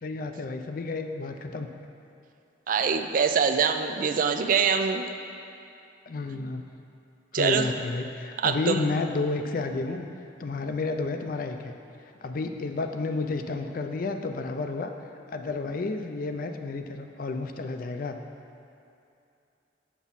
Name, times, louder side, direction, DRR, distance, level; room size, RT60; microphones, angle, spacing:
voice 1, 0.0-1.7 2.8-2.9 6.1-6.7 7.3-10.1 10.4-11.7 12.2-14.9 15.3-18.2, left 3 dB, 50° left, 6 dB, 0.4 m, -31 dB
voice 2, 2.7-5.1 7.3-7.7 8.4-8.8, right 6 dB, 45° right, 8 dB, 0.3 m, -24 dB
7.1 x 6.0 x 4.1 m, 2.6 s
head